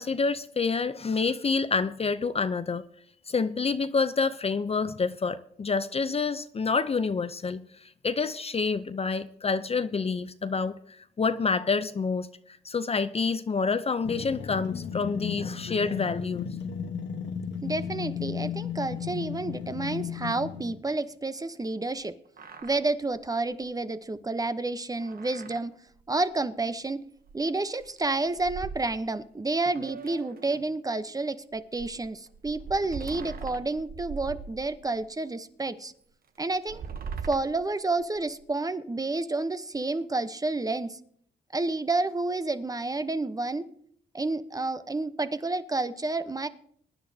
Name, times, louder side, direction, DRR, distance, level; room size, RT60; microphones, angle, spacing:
voice 1, 0.0-2.8 3.3-16.5, left 4 dB, 35° left, 0.6 m, -28 dB
sound 1, 14.0-20.8, left 7 dB, 85° left, 1.2 m, -35 dB
voice 2, 17.6-22.2 22.6-25.8 26.1-27.0 27.3-35.9 36.4-36.8 37.2-41.0 41.5-43.7 44.1-46.5, right 2 dB, 20° right, 0.8 m, -30 dB
sound 2, 22.0-22.1 22.3-22.8 23.1-23.2 23.5-23.6 25.0-25.6 26.0-26.1 27.2-27.3 27.7-29.3 29.7-30.7 31.5-35.0 35.6-35.7 36.5-38.4, right 6 dB, 55° right, 0.9 m, -41 dB
22.5 x 10.0 x 2.8 m
cardioid pair, 80°, 18 cm